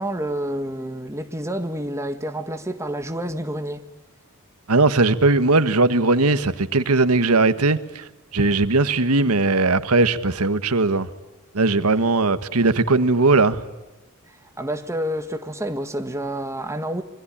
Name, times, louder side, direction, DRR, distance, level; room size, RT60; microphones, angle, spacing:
voice 1, 0.0-3.8 14.6-17.0, right 1 dB, 15° right, 1.7 m, -28 dB
voice 2, 4.7-11.1 11.5-13.6, right 3 dB, 90° right, 1.4 m, -19 dB
26.0 x 24.0 x 8.9 m
head